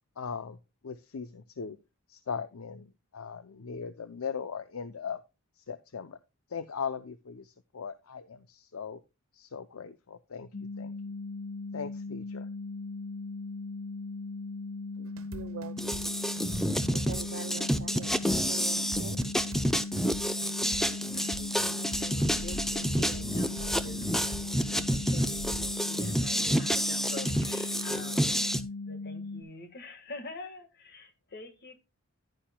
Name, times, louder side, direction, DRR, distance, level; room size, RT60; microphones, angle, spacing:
voice 1, 0.2-0.6 0.8-1.8 2.1-5.2 5.6-6.2 6.5-9.0 9.3-10.9 11.7-12.5, left 6 dB, 80° left, 0.6 m, -39 dB
sound 1, 10.5-29.4, left 3 dB, 65° left, 1.4 m, -39 dB
voice 2, 15.0-16.1 16.9-18.1 18.3-19.2, right 5 dB, 60° right, 0.5 m, -44 dB
sound 2, 15.1-25.7, right 1 dB, 75° right, 1.4 m, -43 dB
sound 3, 15.8-28.6, equal, ahead, 0.6 m, -29 dB
voice 3, 21.1-28.4 28.8-31.8, left 2 dB, 50° left, 1.6 m, -46 dB
11.0 x 10.0 x 2.2 m
head